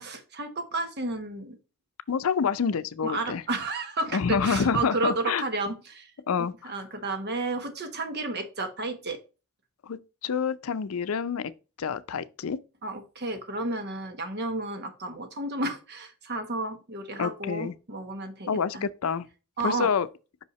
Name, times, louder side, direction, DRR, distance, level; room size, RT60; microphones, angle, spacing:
voice 1, 0.0-1.6 3.0-6.1 6.4-9.2 12.8-18.9 19.6-19.9, right 2 dB, 50° right, 1.2 m, -32 dB
voice 2, 2.1-3.4 4.1-5.0 5.3-5.4 6.3-6.7 9.8-11.5 11.8-12.6 17.2-17.7 18.5-19.3 19.6-20.1, left 6 dB, 80° left, 0.5 m, -27 dB
5.6 x 5.5 x 3.1 m
head